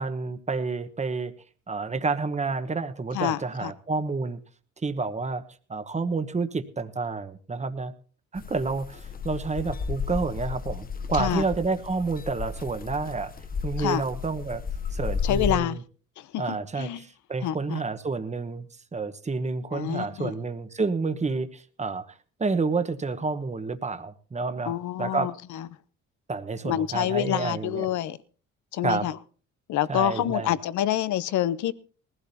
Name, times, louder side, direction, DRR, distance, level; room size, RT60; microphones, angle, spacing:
voice 1, 0.0-1.3 1.7-4.4 4.8-5.4 5.7-7.9 8.3-13.3 13.6-14.6 14.9-15.8 16.4-18.7 18.9-25.3 26.3-27.9 28.8-29.1 29.9-30.5, right 4 dB, 25° right, 1.1 m, -29 dB
voice 2, 3.1-3.7 11.1-11.4 13.8-14.0 15.2-15.8 16.2-17.0 17.4-17.8 19.7-20.3 24.7-25.7 26.6-28.2 28.7-29.2 29.7-31.7, left 11 dB, 75° left, 0.7 m, -27 dB
sound 1, 8.4-15.5, left 5 dB, 30° left, 0.8 m, -33 dB
20.0 x 15.5 x 2.8 m
cardioid pair, 90°, 30 cm